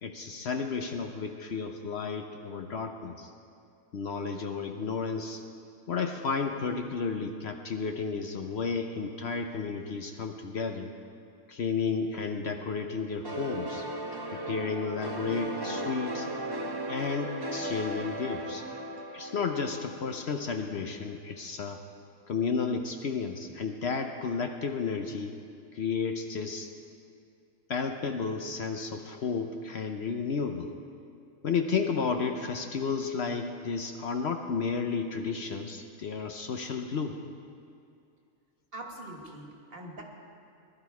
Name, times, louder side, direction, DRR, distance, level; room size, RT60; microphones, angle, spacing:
voice 1, 0.0-3.3 3.9-5.4 5.9-10.9 11.5-13.9 14.3-16.3 16.9-18.7 19.1-21.8 22.3-25.4 25.7-26.7 27.7-30.7 31.4-37.2, left 5 dB, 60° left, 5 dB, 0.9 m, -32 dB
sound 1, 13.2-20.7, right 1 dB, 20° right, 0.8 m, -36 dB
voice 2, 38.7-40.0, right 1 dB, 45° right, 1 dB, 1.9 m, -43 dB
19.5 x 12.0 x 4.7 m, 2.5 s
omnidirectional pair, 1.4 m